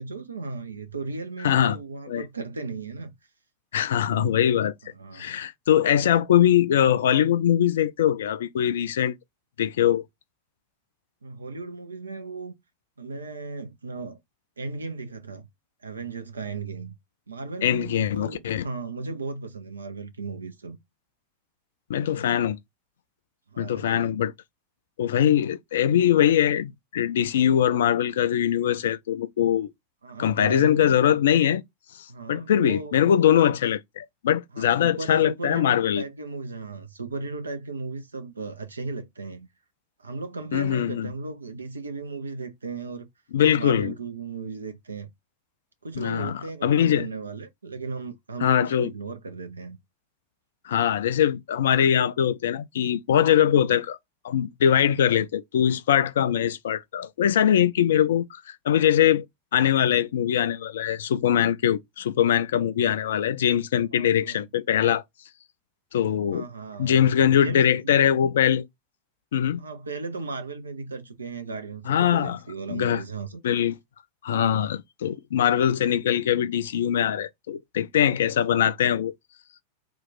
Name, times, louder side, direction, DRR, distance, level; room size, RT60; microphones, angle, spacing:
voice 1, 0.0-3.1 4.8-5.3 11.2-12.5 13.0-14.2 14.6-15.5 15.8-17.0 17.3-20.8 23.5-24.1 30.0-30.9 32.1-33.0 34.5-39.5 40.0-43.1 43.5-45.1 45.8-49.8 63.9-64.5 66.3-67.0 67.3-67.9 69.6-73.4, right 4 dB, 75° right, 0.6 m, -36 dB
voice 2, 1.4-1.8 2.1-2.2 3.7-4.7 5.1-9.2 9.6-10.0 17.6-18.6 21.9-22.6 23.6-24.3 25.0-29.7 30.2-31.6 31.9-36.0 40.5-41.1 43.3-43.9 46.0-47.1 48.4-48.9 50.7-54.0 54.2-59.2 59.5-65.0 65.9-66.4 66.8-68.6 69.3-69.6 71.9-72.4 72.7-73.0 73.4-73.8 74.2-79.1, left 9 dB, 60° left, 0.3 m, -22 dB
3.0 x 2.3 x 4.1 m
figure-of-eight pair, 90°, 0 cm